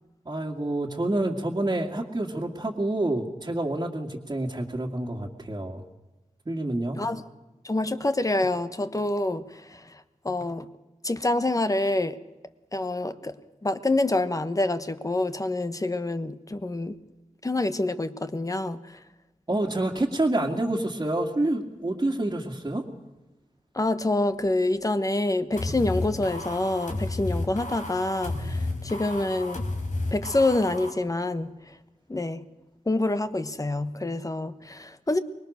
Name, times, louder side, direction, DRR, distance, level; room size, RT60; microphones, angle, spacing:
voice 1, 0.3-5.8 6.5-7.0 19.5-22.8, right 1 dB, 30° right, 2.2 m, -28 dB
voice 2, 7.6-9.4 9.7-9.8 10.2-10.7 11.0-12.2 12.7-13.3 13.6-16.9 17.4-18.8 23.7-29.6 30.1-31.5 32.1-32.4 32.9-35.2, left 2 dB, 25° left, 1.3 m, -26 dB
sound 1, 25.6-30.9, left 2 dB, 80° left, 4.3 m, -32 dB
25.0 x 21.5 x 6.6 m
wide cardioid pair, 90°, 13 cm